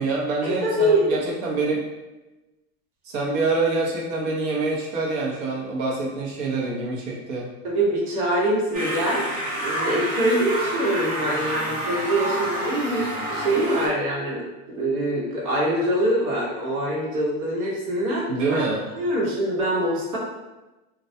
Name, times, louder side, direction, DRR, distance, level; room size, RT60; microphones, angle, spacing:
voice 1, 0.0-1.8 3.0-7.5 18.3-18.8, right 3 dB, 60° right, -2 dB, 0.8 m, -26 dB
voice 2, 0.6-1.0 7.6-9.2 9.6-18.6 18.9-20.2, right 1 dB, 85° right, -4 dB, 1.1 m, -24 dB
sound 1, 8.7-13.9, right 1 dB, 20° right, 0.5 m, -28 dB
2.3 x 2.1 x 2.6 m, 1.1 s
supercardioid pair, 150°, 43 cm